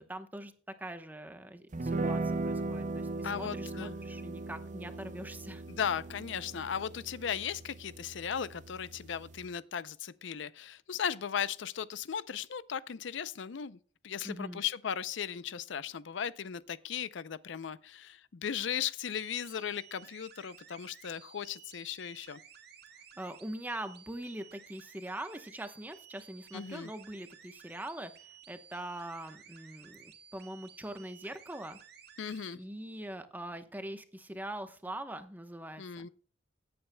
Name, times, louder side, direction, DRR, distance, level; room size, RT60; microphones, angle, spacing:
voice 1, 0.0-5.6 14.2-14.6 23.2-28.1 28.5-31.8 32.5-36.1, right 1 dB, 10° right, 0.9 m, -43 dB
sound 1, 1.7-9.5, right 2 dB, 40° right, 0.6 m, -38 dB
voice 2, 3.2-3.9 5.7-13.8 14.0-22.4 26.5-26.9 32.2-32.6 35.8-36.1, left 8 dB, 70° left, 0.5 m, -37 dB
sound 2, 19.1-32.6, right 8 dB, 55° right, 1.9 m, -55 dB
17.0 x 8.7 x 2.2 m
head